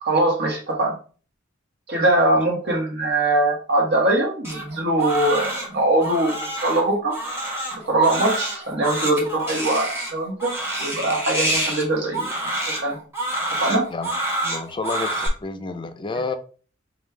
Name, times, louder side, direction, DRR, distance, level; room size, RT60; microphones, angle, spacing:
voice 1, 0.0-0.9 1.9-7.1 7.7-10.5 10.8-12.2 12.8-13.0 13.6-13.9, right 2 dB, 60° right, 1 dB, 1.3 m, -21 dB
Crying sobbing, 4.4-15.3, right 1 dB, 15° right, 1.1 m, -28 dB
voice 2, 14.4-16.4, left 3 dB, 25° left, 9 dB, 0.4 m, -29 dB
5.2 x 2.3 x 3.2 m, 0.40 s
head